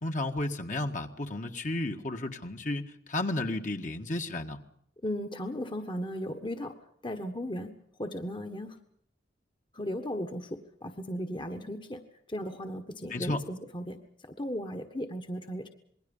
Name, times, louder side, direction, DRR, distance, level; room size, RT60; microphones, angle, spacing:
voice 1, 0.0-4.6 13.1-13.4, left 2 dB, 45° left, 4 dB, 1.8 m, -33 dB
voice 2, 5.0-6.8 7.0-7.7 8.0-8.8 9.7-12.0 12.3-14.0 14.2-15.7, equal, 25° left, 6 dB, 1.5 m, -36 dB
27.5 x 21.5 x 5.5 m, 0.67 s
head